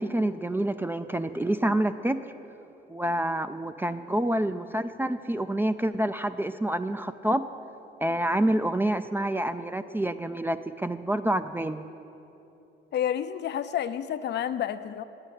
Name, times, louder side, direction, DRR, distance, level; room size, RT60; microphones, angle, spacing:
voice 1, 0.0-2.2 2.9-7.4 8.0-11.8, right 1 dB, 10° right, 11 dB, 0.3 m, -27 dB
voice 2, 12.9-15.0, left 10 dB, 60° left, 12 dB, 0.5 m, -29 dB
9.8 x 7.4 x 8.8 m, 2.9 s
cardioid pair, 90°, 20 cm